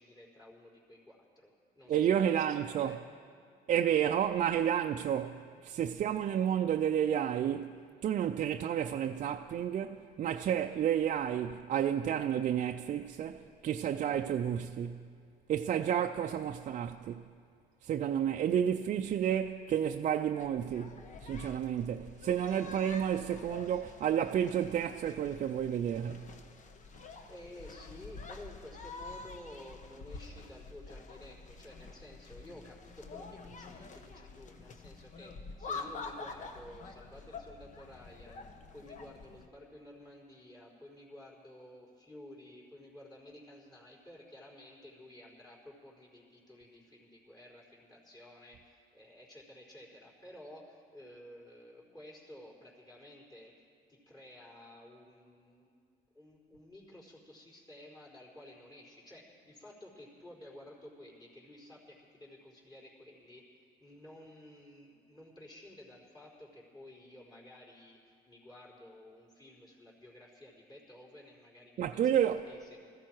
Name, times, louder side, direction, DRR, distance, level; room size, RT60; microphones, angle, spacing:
voice 1, 0.0-3.0 27.3-38.5 38.7-53.6 53.9-55.7 56.1-72.9, left 1 dB, 25° left, 4.4 m, -53 dB
voice 2, 1.9-3.0 3.7-7.7 8.0-15.1 15.5-17.2 17.8-26.4 71.8-72.4, right 9 dB, 50° right, 0.5 m, -31 dB
sound 1, 20.4-39.5, left 4 dB, 45° left, 1.1 m, -47 dB
20.0 x 14.5 x 4.6 m
cardioid pair, 110°, 17 cm